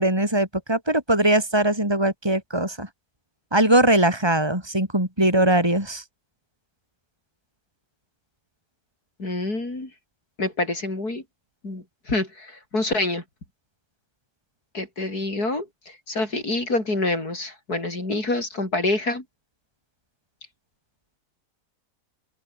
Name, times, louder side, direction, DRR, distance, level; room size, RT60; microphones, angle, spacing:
voice 1, 0.0-2.9 3.5-6.0, right 1 dB, 15° right, 6.0 m, -21 dB
voice 2, 9.2-9.9 10.4-11.2 11.6-13.2 14.7-15.7 16.1-19.2, left 2 dB, 65° left, 6.7 m, -26 dB
open air
omnidirectional pair, 1.7 m